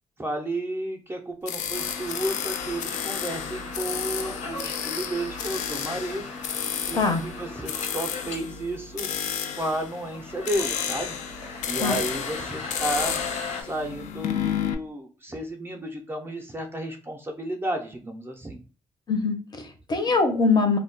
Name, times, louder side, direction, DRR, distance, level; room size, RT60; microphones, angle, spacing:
voice 1, 0.2-6.3 6.9-11.2 11.6-13.2 13.6-18.6, right 1 dB, 20° right, 3 dB, 0.4 m, -32 dB
sound 1, 1.5-14.7, left 8 dB, 85° left, 0.4 m, -32 dB
sound 2, 1.7-8.4 8.6-8.7 8.9-13.6, left 3 dB, 70° left, 0.8 m, -38 dB
voice 2, 19.1-20.8, left 4 dB, 35° left, 6 dB, 0.6 m, -23 dB
2.2 x 2.1 x 3.7 m, 0.36 s
wide cardioid pair, 145°, 12 cm